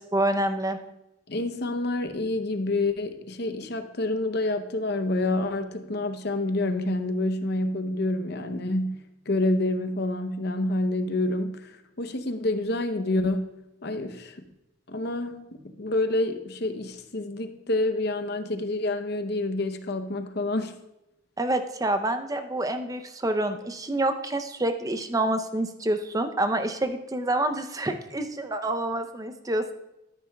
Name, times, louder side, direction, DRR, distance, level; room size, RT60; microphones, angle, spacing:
voice 1, 0.1-0.8 21.4-29.7, right 1 dB, 15° right, 8 dB, 0.5 m, -27 dB
voice 2, 1.3-9.0 9.3-11.7 12.0-13.5 13.8-14.4 14.9-20.7, left 2 dB, 55° left, 9 dB, 0.7 m, -28 dB
12.5 x 10.0 x 2.3 m, 0.89 s
head